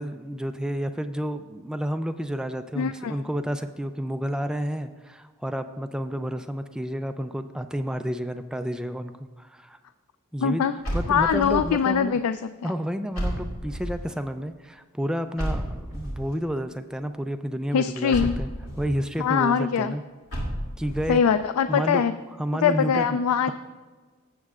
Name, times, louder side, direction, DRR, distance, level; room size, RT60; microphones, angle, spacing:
voice 1, 0.0-9.8 10.3-10.6 10.9-12.2 12.6-18.5 18.8-20.0 20.8-21.2 21.7-22.0 22.4-23.2, equal, 5° right, 8 dB, 0.3 m, -30 dB
voice 2, 2.8-3.2 10.4-10.7 11.1-12.7 17.7-18.4 19.2-19.9 21.1-22.1 22.6-23.5, left 7 dB, 85° left, 11 dB, 0.3 m, -23 dB
sound 1, 10.8-11.8 13.1-14.1 15.4-16.3 18.1-19.0 20.3-21.2, equal, 70° left, 2.5 m, -31 dB
15.5 x 7.3 x 2.4 m, 1.4 s
head